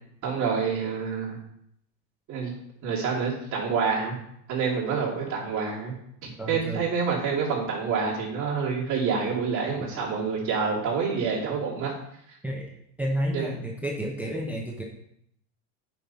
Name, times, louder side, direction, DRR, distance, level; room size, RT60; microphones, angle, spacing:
voice 1, 0.2-1.4 2.3-2.5 2.8-4.1 4.5-5.9 6.2-11.9 12.3-12.4 13.3-13.5, right 5 dB, 35° right, -5 dB, 3.0 m, -27 dB
voice 2, 6.4-6.8 12.4-12.7 13.0-14.8, right 1 dB, 5° right, 0 dB, 0.7 m, -30 dB
9.1 x 5.6 x 4.3 m, 0.74 s
supercardioid pair, 135°, 50 cm